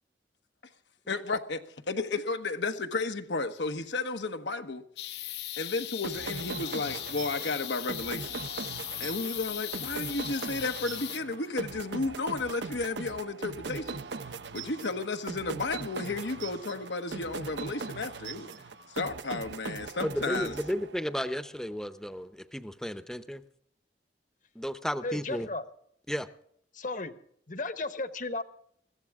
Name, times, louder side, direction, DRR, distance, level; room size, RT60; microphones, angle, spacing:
voice 1, 1.1-4.8 5.6-8.4 9.0-14.1 14.5-18.5 18.9-20.6, left 3 dB, 85° left, 1.3 m, -33 dB
sound 1, 5.0-11.2, left 14 dB, 65° left, 0.8 m, -38 dB
sound 2, 6.0-21.3, right 4 dB, 80° right, 0.8 m, -40 dB
voice 2, 20.0-23.4 24.5-25.5 26.1-26.3, equal, 5° left, 0.7 m, -33 dB
voice 3, 25.0-25.6 26.7-27.1 27.5-28.4, left 2 dB, 45° left, 1.2 m, -34 dB
21.0 x 15.5 x 3.7 m
head